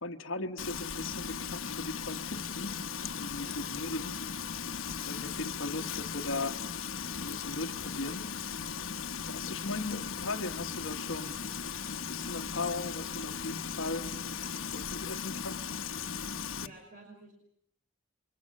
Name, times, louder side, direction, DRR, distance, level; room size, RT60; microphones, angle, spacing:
voice 1, 0.0-2.8 3.2-4.2 5.0-6.6 7.0-8.3 9.2-11.4 12.1-14.1 14.7-15.6, left 2 dB, 70° left, 3 dB, 1.3 m, -38 dB
Frying (food), 0.6-16.7, left 6 dB, 85° left, 1.1 m, -37 dB
voice 2, 16.6-17.3, right 2 dB, 45° right, 1 dB, 5.6 m, -52 dB
29.0 x 24.0 x 6.4 m, 0.67 s
head